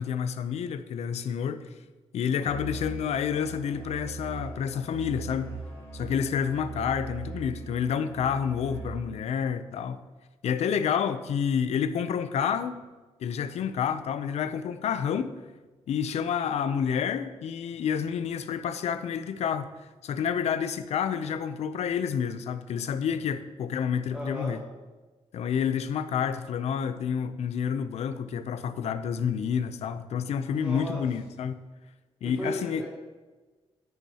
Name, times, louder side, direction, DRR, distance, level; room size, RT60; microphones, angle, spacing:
voice 1, 0.0-1.6 2.1-5.5 5.9-10.0 10.4-12.8 13.2-15.3 15.9-19.7 20.0-24.6 25.3-31.6 32.2-32.8, left 7 dB, 85° left, 11 dB, 0.5 m, -29 dB
Musical instrument, 2.4-9.2, right 3 dB, 20° left, 2.8 m, -40 dB
voice 2, 24.1-24.6 30.5-31.0 32.2-32.9, equal, 10° right, -5 dB, 1.4 m, -35 dB
10.5 x 9.3 x 2.9 m, 1.2 s
wide cardioid pair, 175°, 11 cm